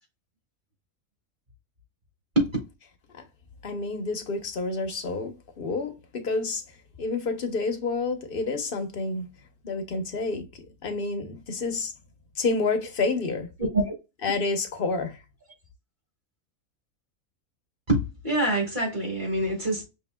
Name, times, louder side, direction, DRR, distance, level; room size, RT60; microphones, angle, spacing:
voice 1, 3.6-6.6 7.0-9.3 9.6-10.5 10.8-11.9 12.4-13.5 14.2-15.2, left 3 dB, 45° left, 1.0 m, -29 dB
voice 2, 17.9-19.9, right 1 dB, 35° right, 2.2 m, -25 dB
5.7 x 3.3 x 2.2 m
omnidirectional pair, 1.5 m